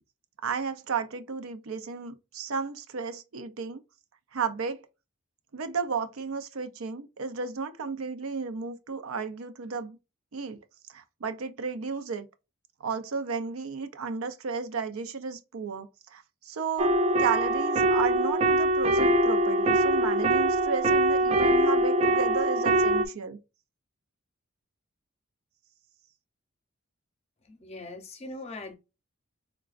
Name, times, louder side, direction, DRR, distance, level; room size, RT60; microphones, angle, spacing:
voice 1, 0.4-3.8 4.3-4.8 5.5-10.0 10.3-10.6 10.9-12.3 12.8-23.4, right 5 dB, 90° right, 0.6 m, -33 dB
sound 1, 16.8-23.1, right 1 dB, 30° right, 0.3 m, -23 dB
voice 2, 27.5-28.8, left 2 dB, 30° left, 0.6 m, -41 dB
4.8 x 2.3 x 2.4 m
head